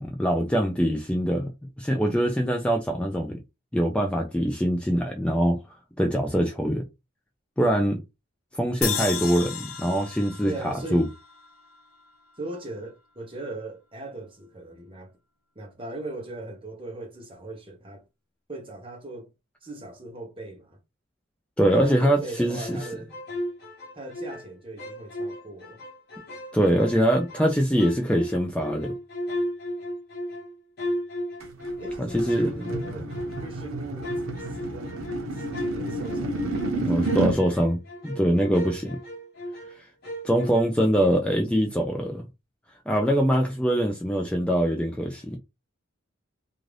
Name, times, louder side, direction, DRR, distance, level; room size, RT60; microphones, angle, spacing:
voice 1, 0.0-1.5 1.8-3.4 3.7-5.6 6.0-6.8 7.6-8.0 8.5-11.1 21.6-22.8 26.5-28.9 32.0-32.5 36.8-39.0 40.2-42.3 42.9-45.4, equal, 5° left, 0.4 m, -23 dB
sound 1, 8.8-12.1, left 8 dB, 85° left, 0.6 m, -34 dB
voice 2, 10.4-11.0 12.4-15.1 15.6-18.0 18.5-19.3 19.6-20.8 21.7-23.1 23.9-25.8 26.5-27.0 31.8-33.1 33.4-34.9 35.4-37.3, right 2 dB, 25° right, 0.8 m, -39 dB
sound 2, 22.6-24.5 24.8-27.5 27.8-33.6 34.0-39.8 40.0-40.9, equal, 50° left, 1.2 m, -34 dB
sound 3, 31.4-37.4, right 2 dB, 90° right, 0.7 m, -31 dB
2.5 x 2.4 x 3.2 m
head